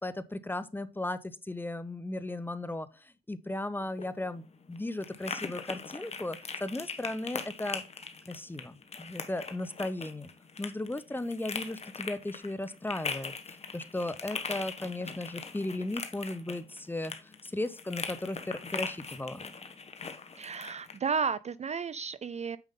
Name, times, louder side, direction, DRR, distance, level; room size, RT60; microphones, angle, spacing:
voice 1, 0.0-4.4 4.7-7.8 8.3-10.3 10.6-13.3 13.7-19.4, left 2 dB, 10° left, 0.7 m, -36 dB
sound 1, 3.8-21.0, left 4 dB, 30° left, 1.3 m, -41 dB
voice 2, 20.4-22.6, right 5 dB, 35° right, 0.4 m, -33 dB
9.1 x 5.2 x 3.7 m
cardioid pair, 90°, 20 cm